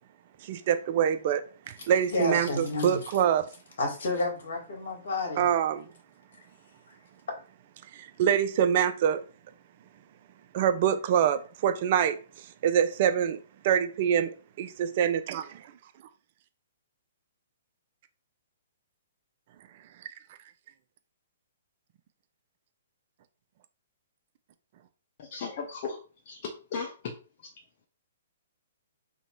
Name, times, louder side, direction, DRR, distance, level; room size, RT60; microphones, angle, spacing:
voice 1, 0.4-3.5 5.4-5.9 7.9-9.2 10.5-12.2 12.6-14.3 14.6-15.7, right 9 dB, 45° right, 0.5 m, -25 dB
voice 2, 2.1-3.0 3.8-5.4, left 2 dB, 65° left, 1.8 m, -30 dB
voice 3, 25.2-26.0 26.2-27.1 27.4-27.5, left 5 dB, 45° left, 0.8 m, -36 dB
3.1 x 2.8 x 4.4 m
hypercardioid pair, 135°, 0 cm